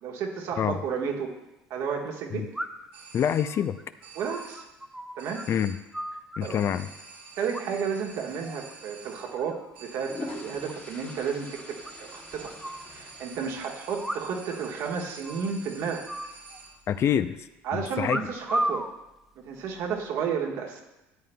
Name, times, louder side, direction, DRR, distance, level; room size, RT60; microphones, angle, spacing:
voice 1, 0.0-1.4 1.7-2.5 4.1-4.6 5.2-5.5 6.4-6.6 7.4-12.5 12.9-16.1 17.6-18.9 19.4-20.8, right 6 dB, 65° right, 1 dB, 1.4 m, -32 dB
sound 1, 0.7-0.8 2.5-3.0 3.4-5.5 5.7-6.7 7.5-8.1 8.4-8.7 9.1-9.7 10.0-10.1 10.3-10.4 10.7-10.8 11.1-11.2 11.9-12.9 14.0-14.6 14.8-14.9 15.2-15.6 16.1-17.0 18.1-18.9 19.7-20.0, right 1 dB, 5° right, 0.6 m, -35 dB
sound 2, 2.9-3.7 4.0-4.8 5.2-6.0 6.4-16.9, right 4 dB, 90° right, 1.5 m, -48 dB
voice 2, 3.1-3.8 5.5-5.8 6.4-6.9 16.9-17.4 17.7-18.2, left 9 dB, 50° left, 12 dB, 0.5 m, -26 dB
sound 3, 9.7-14.3, left 3 dB, 30° left, 1.4 m, -44 dB
13.0 x 8.6 x 2.3 m, 0.95 s
hypercardioid pair, 75°, 6 cm